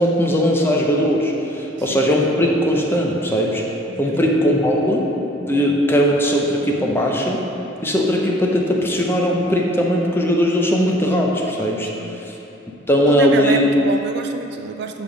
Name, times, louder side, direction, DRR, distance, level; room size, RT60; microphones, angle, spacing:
voice 1, 0.0-3.6 4.0-7.4 7.8-12.3 12.9-13.7, equal, 10° left, -1 dB, 0.6 m, -19 dB
voice 2, 3.9-4.2 11.9-12.2 13.1-15.0, right 5 dB, 60° right, 6 dB, 0.4 m, -27 dB
6.9 x 3.5 x 6.1 m, 2.9 s
head